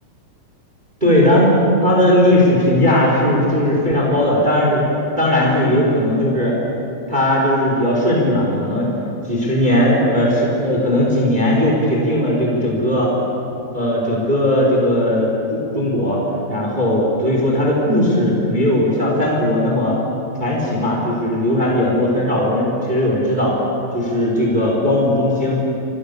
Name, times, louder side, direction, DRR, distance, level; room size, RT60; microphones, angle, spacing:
voice 1, 1.0-1.5 1.8-4.8 5.2-6.6 7.1-8.9 9.3-13.1 13.7-16.2 16.5-19.9 20.4-23.6 23.9-25.6, left 1 dB, 10° right, -2 dB, 4.7 m, -17 dB
28.0 x 27.0 x 7.1 m, 2.8 s
omnidirectional pair, 4.9 m